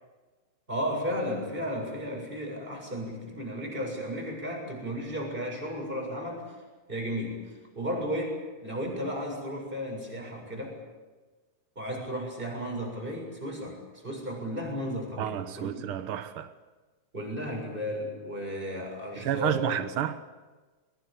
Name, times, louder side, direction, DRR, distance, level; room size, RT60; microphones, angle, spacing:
voice 1, 0.7-6.5 6.9-7.4 7.8-10.8 11.8-15.8 17.1-19.7, equal, 15° right, 7.4 m, -34 dB
voice 2, 15.2-16.5 19.2-20.2, right 10 dB, 85° right, 1.1 m, -30 dB
22.0 x 20.5 x 8.7 m
omnidirectional pair, 3.7 m